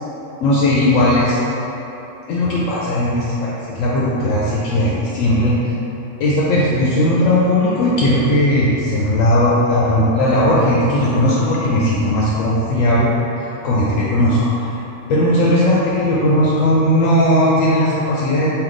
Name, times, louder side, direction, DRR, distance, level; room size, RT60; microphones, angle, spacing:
voice 1, 0.4-1.4 2.3-5.7 6.2-13.1 13.4-14.7 15.1-18.5, left 1 dB, 70° left, -6 dB, 0.9 m, -17 dB
3.5 x 2.7 x 3.7 m, 3.0 s
omnidirectional pair, 1.4 m